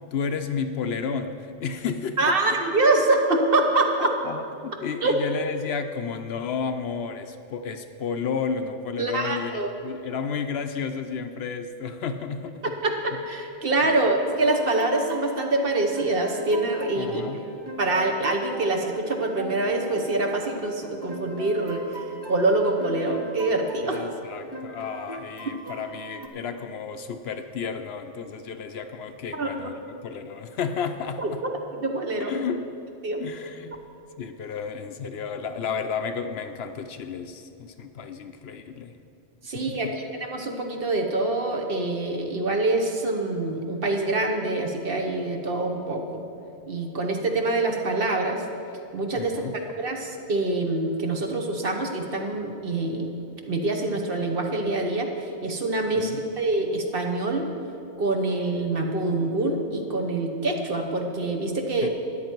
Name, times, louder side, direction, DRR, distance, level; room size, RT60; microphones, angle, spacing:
voice 1, 0.1-2.2 4.2-12.7 13.8-14.0 17.0-17.4 23.8-31.4 32.3-32.7 33.2-33.7 34.2-38.9 39.5-39.9 49.2-49.6 56.0-56.2 61.8-61.9, left 6 dB, 65° left, 8 dB, 0.8 m, -32 dB
voice 2, 2.2-4.1 5.0-5.1 9.0-9.7 12.8-17.2 17.8-21.8 22.3-24.1 29.3-29.7 31.2-32.3 33.0-33.2 39.4-39.9 40.2-46.2 46.7-48.4 48.9-49.4 49.8-53.1 53.5-57.5 58.0-61.9, right 2 dB, 50° right, 3 dB, 1.2 m, -25 dB
sound 1, 14.3-26.3, equal, 25° right, 0.6 m, -40 dB
13.0 x 10.0 x 4.5 m, 2.7 s
omnidirectional pair, 1.2 m